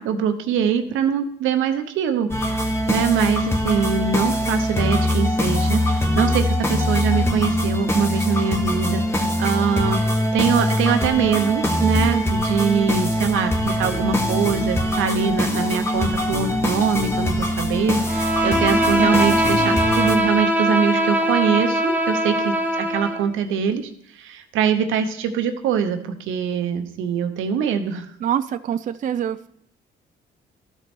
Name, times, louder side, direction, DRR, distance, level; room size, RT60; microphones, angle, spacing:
voice 1, 0.0-2.3 2.6-10.0 10.3-23.9 24.1-28.1, right 7 dB, 85° right, 8 dB, 0.8 m, -23 dB
sound 1, 2.3-20.2, left 1 dB, 10° left, 1.2 m, -22 dB
Bowed string instrument, 18.1-23.3, equal, 10° right, 1.0 m, -21 dB
voice 2, 28.2-29.5, right 9 dB, 40° right, 12 dB, 0.4 m, -25 dB
13.0 x 4.5 x 4.4 m, 0.69 s
cardioid pair, 90°, 20 cm